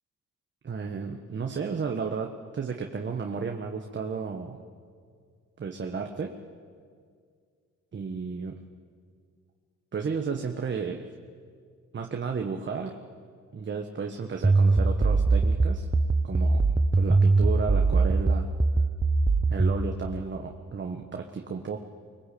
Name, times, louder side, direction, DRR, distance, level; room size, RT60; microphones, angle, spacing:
voice 1, 0.6-4.6 5.6-6.3 7.9-8.6 9.9-11.1 11.9-12.9 13.5-15.9 16.2-16.6 16.9-18.5 19.5-21.8, right 5 dB, 40° right, 3 dB, 1.6 m, -33 dB
sound 1, 14.4-19.8, right 3 dB, 15° right, 1.1 m, -22 dB
24.0 x 22.0 x 8.6 m, 2.1 s
cardioid pair, 90°, 30 cm